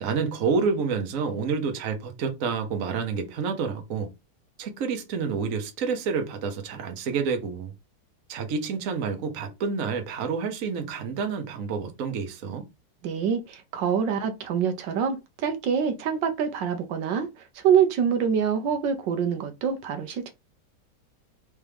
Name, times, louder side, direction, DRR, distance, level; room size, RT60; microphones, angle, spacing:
voice 1, 0.0-4.1 4.6-7.7 8.3-12.6, right 5 dB, 55° right, 1.2 m, -28 dB
voice 2, 13.0-17.3 17.5-20.3, right 7 dB, 80° right, 1.4 m, -25 dB
4.2 x 3.5 x 3.4 m
omnidirectional pair, 1.9 m